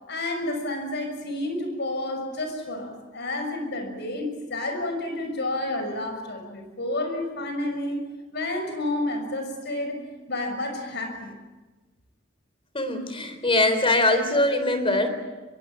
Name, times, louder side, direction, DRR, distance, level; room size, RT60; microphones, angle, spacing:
voice 1, 0.1-8.1 8.3-10.0 10.3-11.3, left 1 dB, 60° left, 5 dB, 6.3 m, -30 dB
voice 2, 12.7-15.1, left 2 dB, 30° left, 8 dB, 3.9 m, -22 dB
25.0 x 22.5 x 9.0 m, 1.2 s
head